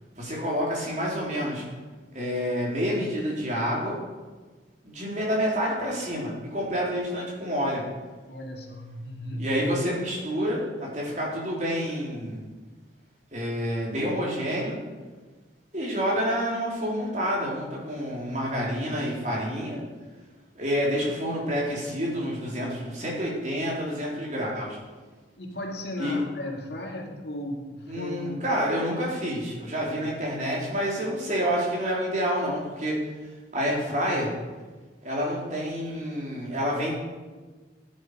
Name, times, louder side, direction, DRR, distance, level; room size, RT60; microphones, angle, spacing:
voice 1, 0.2-1.6 2.1-4.0 4.8-7.8 9.4-12.4 13.3-14.8 15.7-19.8 20.6-24.8 26.0-26.2 27.9-33.0 33.5-34.3 35.0-36.9, equal, 40° right, -4 dB, 4.1 m, -28 dB
voice 2, 8.3-9.5 25.4-28.5, left 1 dB, 65° left, 1 dB, 2.3 m, -35 dB
15.5 x 10.5 x 5.1 m, 1.3 s
head